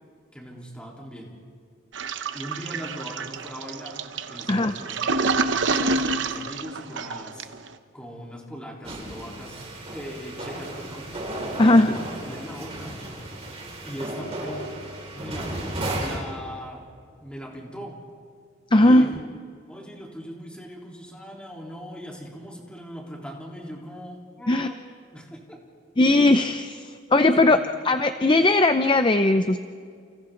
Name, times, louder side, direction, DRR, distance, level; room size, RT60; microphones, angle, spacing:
voice 1, 0.3-1.4 2.3-4.0 4.3-7.7 7.9-9.6 9.9-11.2 11.6-13.0 13.8-14.7 15.1-16.9 17.2-18.0 18.8-19.3 19.7-24.8 25.1-25.7 27.4-27.8, equal, 5° left, -2 dB, 3.6 m, -40 dB
Toilet flush, 1.9-7.7, right 3 dB, 65° right, 1.0 m, -28 dB
sound 1, 8.8-16.2, right 1 dB, 30° right, 5.3 m, -34 dB
voice 2, 11.6-11.9 18.7-19.1 24.5-24.7 26.0-27.6 27.8-29.6, left 2 dB, 25° left, 9 dB, 0.5 m, -18 dB
30.0 x 29.5 x 3.9 m, 2.2 s
head